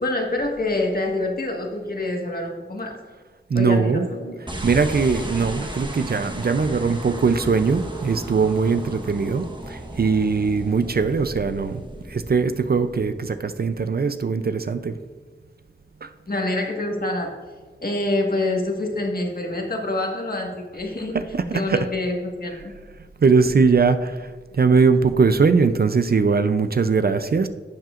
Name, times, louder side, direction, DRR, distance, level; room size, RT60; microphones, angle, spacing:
voice 1, 0.0-3.0 3.5-4.4 16.3-17.3 17.8-21.2 21.5-22.7, left 2 dB, 50° left, 1 dB, 1.6 m, -26 dB
voice 2, 3.5-11.8 12.1-15.0 16.0-16.1 21.1-21.9 23.2-27.5, right 5 dB, 50° right, 10 dB, 0.5 m, -21 dB
sound 1, 4.5-13.9, right 1 dB, 25° right, 1.1 m, -35 dB
11.5 x 7.6 x 2.5 m, 1.4 s
wide cardioid pair, 75°, 20 cm